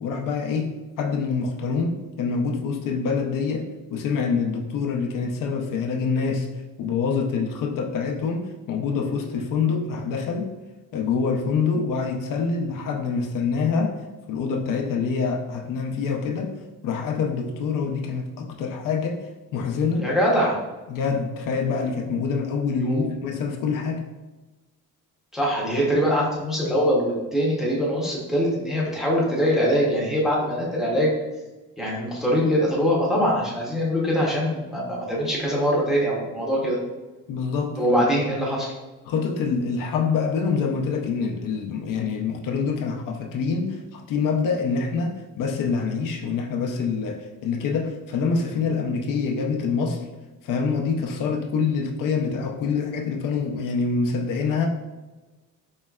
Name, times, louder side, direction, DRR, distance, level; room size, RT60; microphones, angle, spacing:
voice 1, 0.0-6.5 6.8-10.5 10.9-14.0 14.3-16.5 16.8-19.2 19.5-20.1 20.9-24.0 37.3-37.7 39.1-50.1 50.4-54.7, left 5 dB, 75° left, 2 dB, 0.6 m, -26 dB
voice 2, 20.0-20.6 22.8-23.1 25.3-31.1 31.8-36.8 37.8-38.7, equal, ahead, -5 dB, 0.7 m, -23 dB
4.6 x 3.1 x 2.3 m, 1.2 s
cardioid pair, 160°, 32 cm